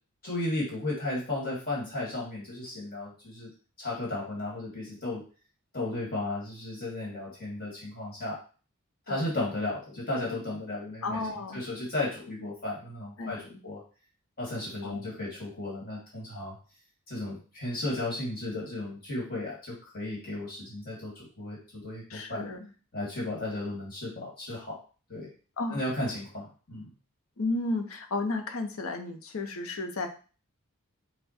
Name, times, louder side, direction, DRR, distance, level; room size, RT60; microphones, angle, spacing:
voice 1, 0.2-3.5 3.8-5.2 5.7-8.4 9.1-11.2 11.5-13.8 14.4-16.6 17.1-22.4 22.9-24.8 25.1-25.3 25.7-26.9, left 2 dB, 40° left, -4 dB, 1.8 m, -34 dB
voice 2, 11.0-11.6 13.2-13.6 14.8-15.1 22.1-22.7 25.6-25.8 27.4-30.1, left 2 dB, 65° left, 5 dB, 0.8 m, -33 dB
5.7 x 2.2 x 4.3 m, 0.37 s
head